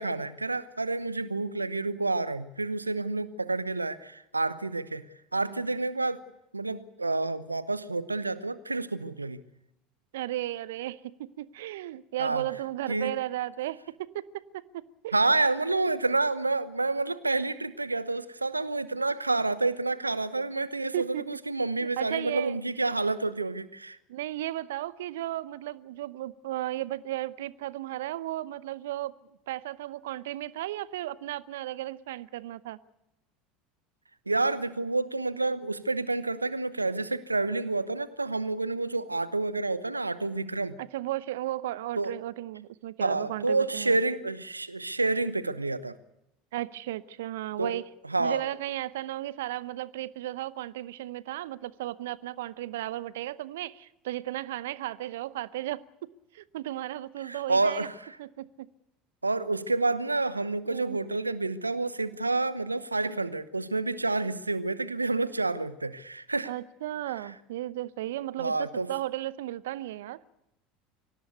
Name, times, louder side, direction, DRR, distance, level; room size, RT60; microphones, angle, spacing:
voice 1, 0.0-5.0 5.3-6.2 6.5-9.4 12.2-12.4 12.9-13.1 15.1-24.0 34.3-40.8 42.0-42.1 43.0-46.0 47.6-47.8 48.1-48.4 57.2-57.9 59.2-66.5 68.4-68.9, right 3 dB, 90° right, 1.0 m, -29 dB
voice 2, 10.1-14.2 14.5-15.2 20.9-21.2 22.0-22.6 24.1-29.1 29.5-32.8 40.8-44.0 46.5-47.9 48.2-56.1 56.3-57.9 58.2-58.7 60.7-61.0 66.4-70.2, right 14 dB, 65° right, 0.8 m, -35 dB
24.5 x 18.0 x 8.2 m
figure-of-eight pair, 70°, 0 cm